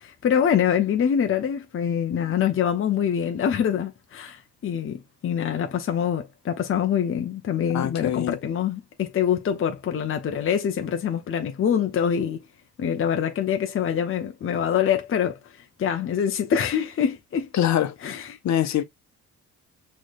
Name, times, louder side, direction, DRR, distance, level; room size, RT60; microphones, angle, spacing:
voice 1, 0.0-12.4 12.8-15.4 15.8-17.5 18.0-18.4, left 8 dB, 45° left, 0.8 m, -25 dB
voice 2, 7.7-8.4 17.5-17.9 18.4-18.8, left 11 dB, 65° left, 1.0 m, -23 dB
6.1 x 3.2 x 2.4 m
cardioid pair, 90°, 30 cm